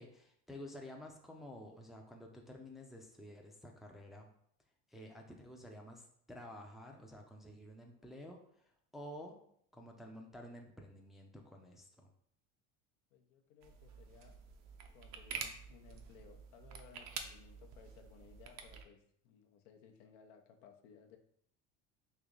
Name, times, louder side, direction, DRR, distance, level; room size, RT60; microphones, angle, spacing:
voice 1, 0.0-4.3 4.9-9.4 9.7-12.1, left 1 dB, ahead, 1 dB, 0.5 m, -51 dB
voice 2, 13.1-14.4 14.9-21.2, left 7 dB, 70° left, 5 dB, 0.7 m, -60 dB
sound 1, 13.6-18.8, right 6 dB, 55° right, 0.6 m, -48 dB
3.3 x 2.7 x 3.8 m, 0.65 s
supercardioid pair, 105°, 34 cm